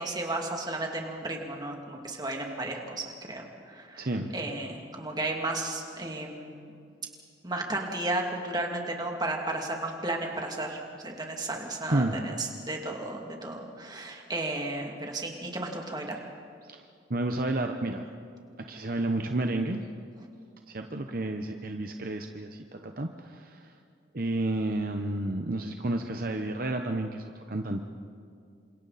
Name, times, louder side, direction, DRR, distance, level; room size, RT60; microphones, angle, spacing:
voice 1, 0.0-4.1 4.3-6.7 7.4-16.2, right 2 dB, 25° right, 1 dB, 2.6 m, -34 dB
voice 2, 4.0-4.3 11.9-12.1 16.7-16.8 17.1-18.1 18.7-19.8 20.7-23.7 24.1-27.8, right 2 dB, 50° right, 4 dB, 1.0 m, -31 dB
29.0 x 26.5 x 4.2 m, 2.3 s
head